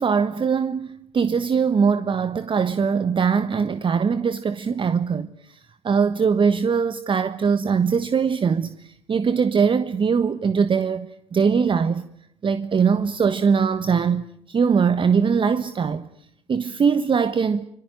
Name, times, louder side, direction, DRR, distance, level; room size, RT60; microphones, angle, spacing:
voice 1, 0.0-5.6 5.8-12.1 12.4-16.1 16.5-17.6, right 6 dB, 35° right, 1.3 m, -21 dB
25.5 x 23.5 x 9.3 m
hypercardioid pair, 55°, 14 cm